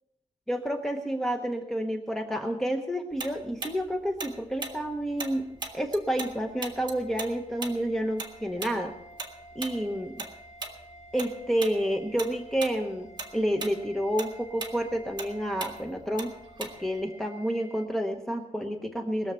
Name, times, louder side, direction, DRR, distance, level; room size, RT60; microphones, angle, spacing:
voice 1, 0.5-5.4 5.7-8.9 9.5-10.1 11.1-16.3 16.6-19.3, equal, 5° left, 2 dB, 0.9 m, -29 dB
Tick-tock, 3.2-6.3 6.6-11.3 11.6-11.8 12.2-12.8 13.1-17.0, right 3 dB, 40° right, 1.9 m, -38 dB
sound 1, 4.9-17.9, equal, 25° left, 2.7 m, -51 dB
21.0 x 7.2 x 6.8 m, 0.84 s
wide cardioid pair, 175°, 12 cm